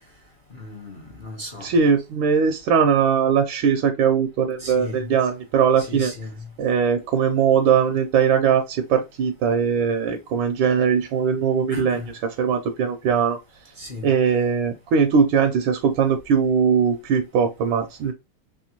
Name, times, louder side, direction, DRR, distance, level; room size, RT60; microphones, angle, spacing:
voice 1, 0.5-1.7 4.6-5.1 5.8-6.4 11.7-12.1 13.8-14.1, left 2 dB, 40° left, 0.7 m, -36 dB
voice 2, 1.6-6.1 6.6-12.0 12.4-13.4 14.0-18.1, right 6 dB, 75° right, 1.3 m, -20 dB
3.5 x 3.2 x 2.8 m
omnidirectional pair, 2.3 m